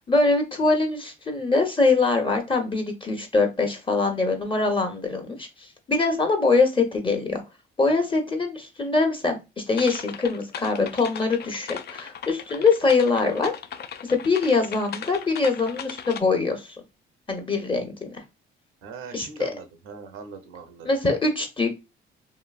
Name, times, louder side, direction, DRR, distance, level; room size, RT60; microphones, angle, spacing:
voice 1, 0.1-7.4 7.8-9.4 9.7-13.5 14.1-16.8 17.3-18.2 19.1-19.5 20.8-21.7, left 3 dB, 25° left, 4 dB, 1.0 m, -23 dB
sound 1, 9.7-16.2, left 8 dB, 50° left, 0.4 m, -38 dB
voice 2, 18.8-20.9, right 5 dB, 90° right, 6 dB, 0.7 m, -41 dB
3.0 x 2.6 x 2.3 m, 0.25 s
supercardioid pair, 70°, 21 cm